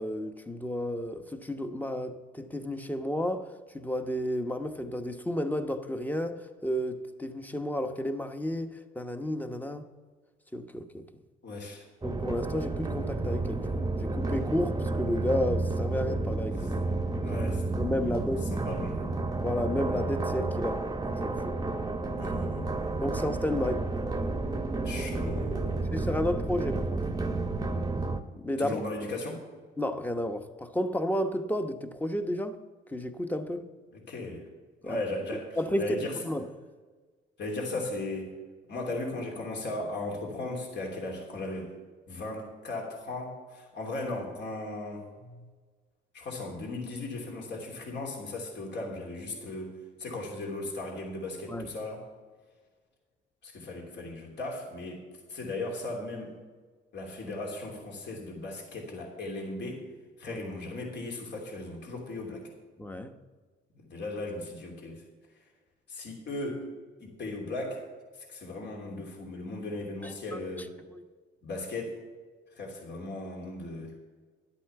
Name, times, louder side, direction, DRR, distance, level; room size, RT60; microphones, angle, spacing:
voice 1, 0.0-9.9 10.5-11.1 12.0-16.7 17.8-18.5 19.4-21.6 23.0-23.9 25.8-27.0 28.4-28.7 29.8-32.6 32.9-33.6 34.8-35.0 35.5-36.5 45.3-45.5 51.5-51.7 60.3-60.4 62.8-63.1 70.0-70.4 70.9-71.0, left 1 dB, 10° left, 1.0 m, -32 dB
voice 2, 11.4-11.8 17.0-17.6 18.5-19.0 22.2-22.7 24.8-26.1 28.6-29.4 33.9-34.4 34.8-36.2 37.4-38.3 38.7-41.7 42.1-45.0 46.1-52.0 53.4-56.3 56.9-59.8 60.2-62.5 63.7-65.0 65.9-66.6 67.0-67.8 68.2-70.7 71.4-71.9 72.5-73.9, left 2 dB, 60° left, 3.1 m, -37 dB
sound 1, 12.0-28.2, right 3 dB, 20° right, 0.9 m, -31 dB
12.0 x 8.4 x 6.8 m
cardioid pair, 90°, 20 cm